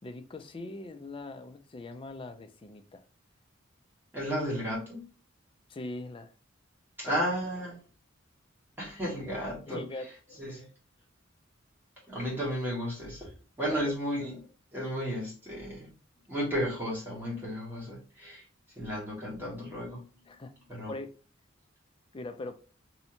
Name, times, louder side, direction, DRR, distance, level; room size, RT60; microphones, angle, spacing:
voice 1, 0.0-3.0 5.7-6.3 7.1-7.2 9.7-10.1 13.7-13.9 20.3-20.5 20.9-21.1 22.1-22.6, left 2 dB, 25° left, 0.4 m, -41 dB
voice 2, 4.1-5.1 7.0-7.8 8.8-9.8 10.4-10.7 12.1-13.3 13.6-15.9 16.3-18.4 18.7-20.0 20.7-20.9, equal, 10° right, 1.5 m, -33 dB
3.2 x 2.7 x 2.8 m
head